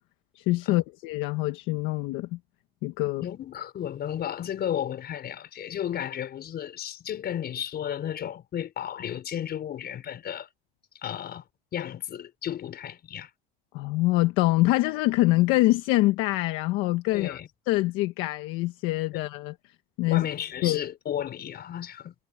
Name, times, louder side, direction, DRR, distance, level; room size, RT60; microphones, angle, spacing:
voice 1, 0.3-2.4 2.8-3.3 13.7-17.4 17.7-19.5 20.0-20.3 20.6-20.8, left 19 dB, 85° left, 1.2 m, -25 dB
voice 2, 3.2-10.5 11.0-11.4 11.7-13.3 17.1-17.5 20.1-22.1, left 10 dB, 50° left, 5.2 m, -33 dB
cardioid pair, 105°, 20 cm